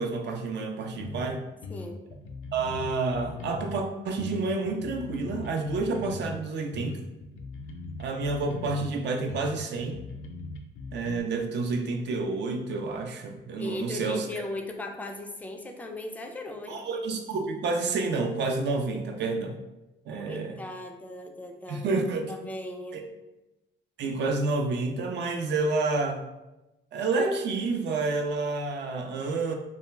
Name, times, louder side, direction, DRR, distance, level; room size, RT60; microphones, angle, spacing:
voice 1, 0.0-1.4 2.5-7.0 8.0-10.1 10.9-14.4 16.7-19.6 20.1-20.6 21.7-22.3 22.9-23.0 24.0-26.2 26.9-29.5, right 3 dB, 60° right, 4 dB, 0.4 m, -29 dB
sound 1, 1.0-1.3 1.6-3.8 4.2-6.4 6.7-8.9 9.3-11.2, left 3 dB, 80° left, 0.4 m, -40 dB
voice 2, 13.6-16.8 20.2-21.9 22.2-23.1, left 2 dB, 10° left, 3 dB, 0.3 m, -37 dB
2.3 x 2.1 x 3.1 m, 0.99 s
cardioid pair, 90°, 20 cm